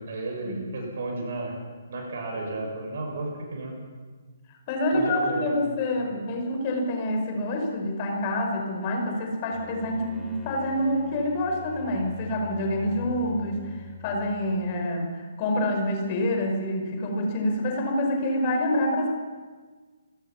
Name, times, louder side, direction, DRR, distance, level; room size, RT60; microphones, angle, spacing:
voice 1, 0.0-1.6 1.9-3.8 4.9-5.5, right 2 dB, 50° right, 1 dB, 7.3 m, -33 dB
voice 2, 4.7-19.1, left 1 dB, 30° left, 2 dB, 5.2 m, -27 dB
Bowed string instrument, 9.5-14.8, left 4 dB, 5° right, 3.2 m, -43 dB
28.5 x 17.0 x 6.0 m, 1.4 s
figure-of-eight pair, 130°, 0 cm